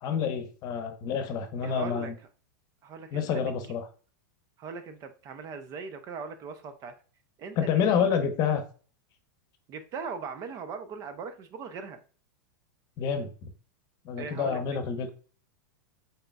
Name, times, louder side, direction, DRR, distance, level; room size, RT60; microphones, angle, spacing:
voice 1, 0.0-2.1 3.1-3.9 7.6-8.6 13.0-13.5 14.0-15.1, left 7 dB, 40° left, 0.8 m, -28 dB
voice 2, 1.6-2.1 2.8-3.7 4.6-6.9 7.4-7.7 8.0-8.1 9.7-12.0 14.2-14.6, right 5 dB, 35° right, 0.5 m, -39 dB
4.0 x 3.8 x 2.2 m
hypercardioid pair, 125°, 10 cm